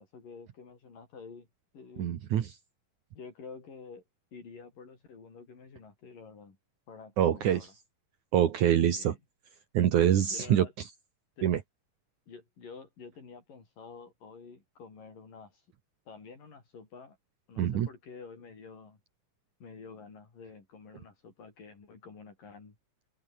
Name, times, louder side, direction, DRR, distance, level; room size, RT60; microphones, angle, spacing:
voice 1, 0.0-1.5 1.7-2.1 3.2-4.0 4.3-6.6 6.9-7.7 8.9-9.2 10.3-10.7 11.4-11.5 12.3-15.7 16.1-17.2 17.5-19.0 19.6-22.8, left 5 dB, 75° left, 7.3 m, -49 dB
voice 2, 2.0-2.5 7.2-7.6 8.3-9.1 9.7-10.7 11.4-11.6 17.6-17.9, right 10 dB, 65° right, 2.9 m, -25 dB
open air
omnidirectional pair, 3.9 m